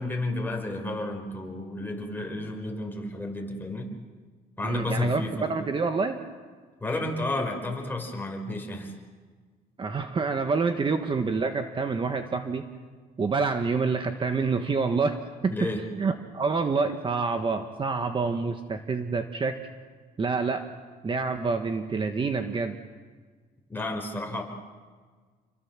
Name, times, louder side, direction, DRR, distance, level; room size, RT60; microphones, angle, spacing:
voice 1, 0.0-3.9 4.6-5.5 6.8-8.9 15.5-15.8 23.7-24.4, left 2 dB, 10° left, 2 dB, 5.1 m, -32 dB
voice 2, 4.6-6.2 9.8-12.7 13.2-15.7 16.0-19.6 20.2-20.7 21.0-22.7, right 4 dB, 30° right, 7 dB, 1.5 m, -27 dB
28.5 x 22.5 x 7.5 m, 1.5 s
cardioid pair, 110°, 17 cm